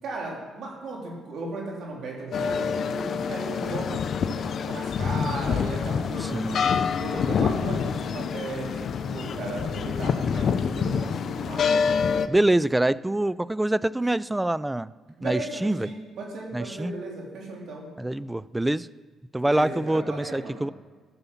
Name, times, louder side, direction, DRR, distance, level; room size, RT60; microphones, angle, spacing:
voice 1, 0.0-6.7 7.0-11.8 15.2-17.9 19.5-20.6, right 3 dB, 75° right, -2 dB, 3.6 m, -36 dB
sound 1, 2.3-12.3, left 6 dB, 60° left, 0.6 m, -26 dB
voice 2, 12.3-14.9 15.2-15.9 16.5-16.9 18.0-18.9 19.3-20.7, right 1 dB, 10° right, 18 dB, 0.3 m, -25 dB
15.0 x 7.1 x 5.6 m, 1.4 s
cardioid pair, 90°, 0 cm